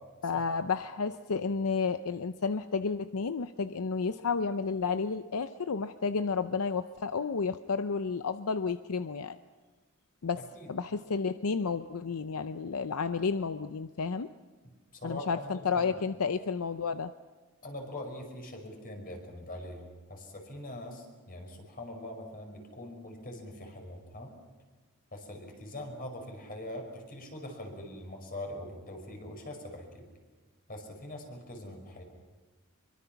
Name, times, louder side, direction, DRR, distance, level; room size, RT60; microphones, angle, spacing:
voice 1, 0.2-9.4 10.2-10.4 10.7-14.3 15.0-17.1, left 5 dB, 80° left, 10 dB, 0.6 m, -31 dB
voice 2, 10.3-10.7 14.9-15.9 17.6-24.3 25.1-30.1 30.7-32.0, left 1 dB, 40° left, 3 dB, 5.6 m, -43 dB
25.5 x 23.5 x 5.9 m, 1.3 s
head